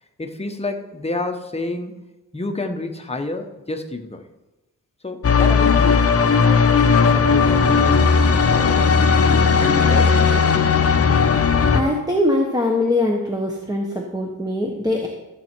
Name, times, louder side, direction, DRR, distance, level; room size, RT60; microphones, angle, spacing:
voice 1, 0.2-4.2 5.0-6.0 6.7-8.1 8.5-10.2, left 2 dB, 20° left, 4 dB, 0.9 m, -29 dB
sound 1, 5.2-11.8, left 5 dB, 45° left, 0.7 m, -16 dB
voice 2, 11.7-15.1, left 1 dB, 10° right, 0 dB, 1.0 m, -22 dB
14.0 x 7.5 x 4.5 m, 1.0 s
wide cardioid pair, 155°, 35 cm